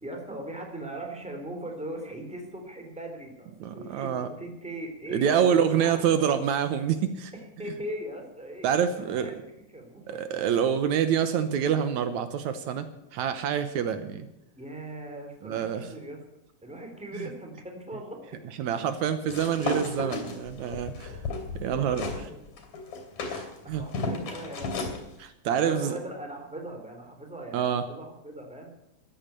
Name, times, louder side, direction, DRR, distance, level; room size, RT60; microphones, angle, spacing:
voice 1, 0.0-6.3 7.3-10.4 14.6-16.2 16.6-18.2 20.6-20.8 21.6-22.4 23.6-24.9 25.6-28.7, right 1 dB, ahead, 2 dB, 2.9 m, -40 dB
voice 2, 3.6-4.3 5.1-7.3 8.6-9.3 10.1-14.3 15.4-15.9 17.2-17.3 18.6-21.2 21.5-22.1 23.2-23.8 25.2-26.0 27.5-27.8, right 8 dB, 75° right, 10 dB, 2.3 m, -27 dB
sound 1, 19.3-22.2 22.6-25.0, left 3 dB, 70° left, 4.2 m, -33 dB
13.5 x 10.5 x 8.9 m, 0.85 s
omnidirectional pair, 3.4 m